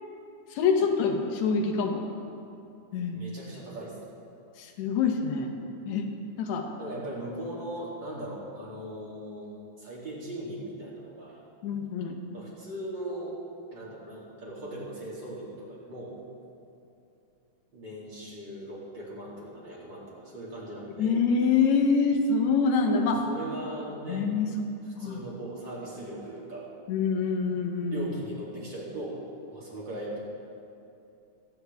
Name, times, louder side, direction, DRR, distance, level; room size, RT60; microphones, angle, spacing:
voice 1, 0.5-2.0 2.9-3.2 4.6-5.5 5.8-6.1 6.4-6.7 11.6-12.2 21.0-23.2 24.1-24.7 25.0-25.2 26.9-28.1, left 5 dB, 70° left, 4 dB, 2.2 m, -25 dB
voice 2, 3.1-4.0 6.8-11.4 12.3-13.4 13.7-16.2 17.7-21.2 22.9-24.3 24.8-26.7 27.9-29.2 29.5-30.2, right 1 dB, 35° right, -6 dB, 3.3 m, -39 dB
22.5 x 9.0 x 3.5 m, 2.7 s
omnidirectional pair, 3.5 m